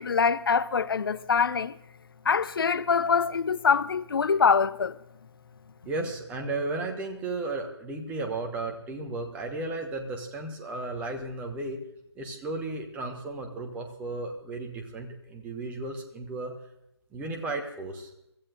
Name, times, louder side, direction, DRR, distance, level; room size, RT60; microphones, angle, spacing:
voice 1, 0.0-1.7 2.3-4.9, left 6 dB, 50° left, 0.6 m, -24 dB
voice 2, 5.8-11.8 12.1-16.5 17.1-18.1, right 2 dB, 10° right, 1.3 m, -34 dB
24.5 x 14.5 x 2.5 m
figure-of-eight pair, 150°, 15 cm